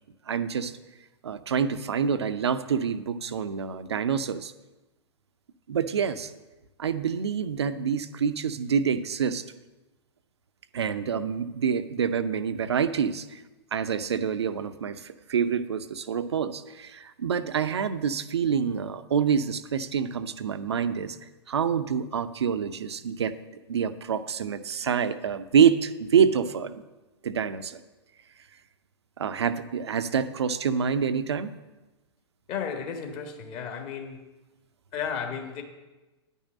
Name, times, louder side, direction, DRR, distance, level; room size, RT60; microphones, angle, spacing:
voice 1, 0.3-0.7 1.2-4.5 5.7-6.3 6.8-9.4 10.7-13.4 13.7-21.2 21.5-23.3 23.7-26.8 27.2-27.8 29.2-31.5, right 7 dB, 65° right, 12 dB, 0.7 m, -26 dB
voice 2, 32.5-34.3 34.9-35.6, left 7 dB, 30° left, 3 dB, 1.7 m, -33 dB
10.0 x 5.5 x 8.4 m, 1.1 s
figure-of-eight pair, 105°, 15 cm